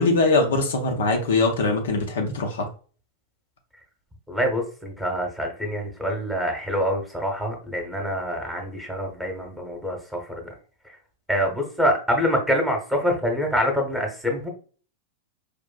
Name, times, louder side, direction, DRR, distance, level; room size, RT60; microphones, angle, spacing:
voice 1, 0.0-2.7, left 3 dB, 60° left, 2 dB, 0.7 m, -22 dB
voice 2, 4.3-10.5 11.3-14.5, equal, 5° right, 2 dB, 1.1 m, -25 dB
4.9 x 2.5 x 2.3 m, 0.39 s
figure-of-eight pair, 90°, 0 cm